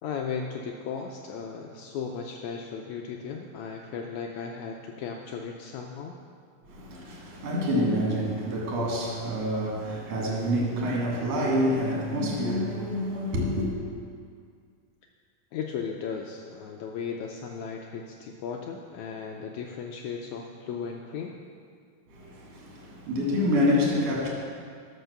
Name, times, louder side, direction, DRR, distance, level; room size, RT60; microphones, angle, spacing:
voice 1, 0.0-6.1 15.5-21.3, left 6 dB, 85° left, 2 dB, 1.6 m, -36 dB
voice 2, 6.6-13.7 22.1-24.3, equal, 50° right, -3 dB, 2.9 m, -27 dB
12.0 x 5.3 x 6.8 m, 2.2 s
omnidirectional pair, 4.0 m